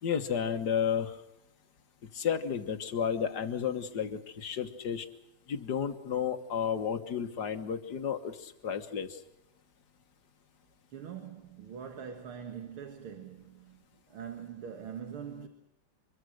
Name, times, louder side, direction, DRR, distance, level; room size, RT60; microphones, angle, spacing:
voice 1, 0.0-1.1 2.1-5.1 5.5-9.2, left 7 dB, 55° left, 1.9 m, -32 dB
voice 2, 10.9-15.5, right 7 dB, 85° right, 2.5 m, -43 dB
24.5 x 22.5 x 6.4 m
omnidirectional pair, 2.3 m